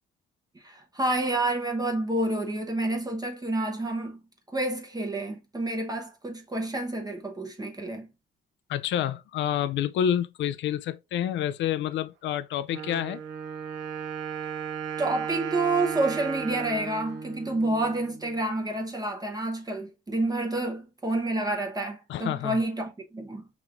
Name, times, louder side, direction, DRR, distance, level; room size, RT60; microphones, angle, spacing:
voice 1, 0.5-4.2 4.5-8.1 15.0-23.4, right 2 dB, 20° right, 0.9 m, -29 dB
voice 2, 8.7-13.2 22.1-22.6, left 10 dB, 70° left, 0.4 m, -28 dB
Wind instrument woodwind instrument, 12.7-18.4, right 7 dB, 70° right, 0.8 m, -36 dB
4.8 x 3.0 x 2.5 m
cardioid pair, 90°, 20 cm